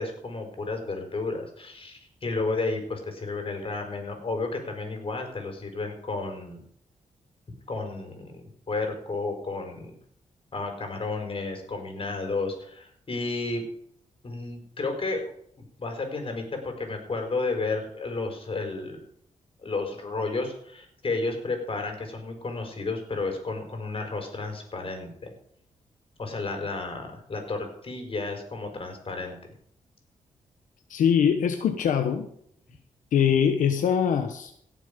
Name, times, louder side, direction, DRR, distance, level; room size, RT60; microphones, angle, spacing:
voice 1, 0.0-6.6 7.7-9.9 10.5-13.6 14.2-15.2 15.8-19.0 19.6-25.3 26.2-29.4, left 3 dB, 45° left, 4 dB, 4.8 m, -32 dB
voice 2, 30.9-32.3 33.1-34.7, left 8 dB, 85° left, 7 dB, 1.1 m, -23 dB
17.5 x 7.5 x 5.2 m, 0.65 s
cardioid pair, 80°, 13 cm